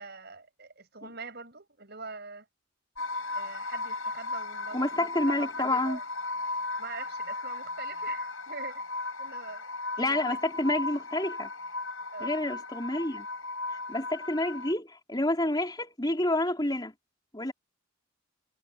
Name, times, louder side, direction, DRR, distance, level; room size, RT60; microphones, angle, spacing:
voice 1, 0.0-2.5 3.3-6.0 6.8-8.8 9.2-10.4 12.1-12.3, right 4 dB, 50° right, 6.7 m, -44 dB
sound 1, 3.0-14.7, left 3 dB, 85° left, 5.5 m, -36 dB
voice 2, 4.7-6.0 10.0-11.5 12.2-13.3 13.7-16.9 17.3-17.5, left 1 dB, 20° left, 4.4 m, -29 dB
head